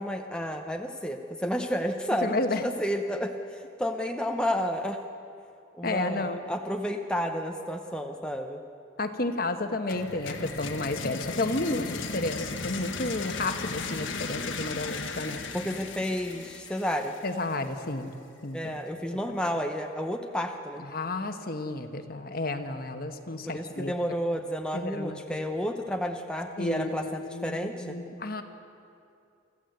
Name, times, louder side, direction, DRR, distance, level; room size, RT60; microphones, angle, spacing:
voice 1, 0.0-5.0 5.8-8.6 15.5-17.1 18.5-20.8 23.5-28.0, equal, 5° left, 3 dB, 0.7 m, -31 dB
voice 2, 2.2-2.6 5.8-6.4 9.0-15.4 17.2-18.7 19.1-19.2 20.9-23.9 24.7-25.4 26.6-28.4, left 2 dB, 45° left, 7 dB, 1.2 m, -32 dB
sound 1, 9.9-17.7, left 4 dB, 75° left, 1.5 m, -36 dB
25.0 x 14.5 x 7.9 m, 2.6 s
head